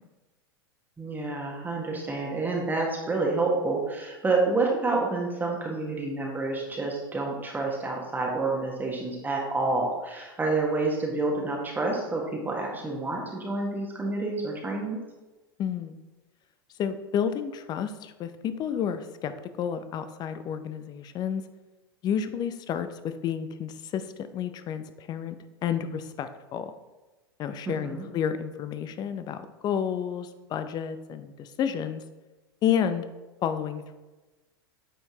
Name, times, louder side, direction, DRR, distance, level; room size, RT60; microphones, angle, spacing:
voice 1, 1.0-15.0 27.6-28.0, right 3 dB, 15° right, -1 dB, 1.3 m, -28 dB
voice 2, 15.6-16.0 16.8-19.3 19.6-21.4 22.0-24.1 24.3-25.4 25.6-26.7 27.4-32.0 32.6-33.1 33.4-33.9, left 8 dB, 35° left, 11 dB, 0.6 m, -30 dB
9.0 x 4.4 x 2.9 m, 1.1 s
hypercardioid pair, 95°, 12 cm